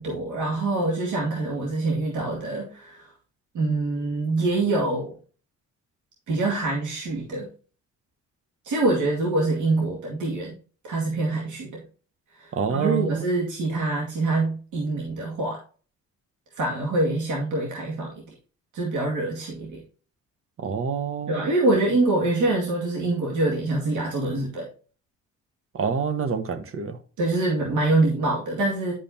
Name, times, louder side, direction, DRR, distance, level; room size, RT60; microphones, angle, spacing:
voice 1, 0.0-3.1 3.5-5.1 6.3-7.5 8.6-10.5 10.8-11.8 12.3-15.6 16.6-18.3 18.7-19.8 21.3-24.7 27.2-28.9, right 2 dB, 80° right, 2.3 m, -25 dB
voice 2, 12.5-13.2 20.6-21.5 25.7-27.0, right 6 dB, 45° right, 1.1 m, -27 dB
10.5 x 5.5 x 2.8 m
cardioid pair, 90°, 30 cm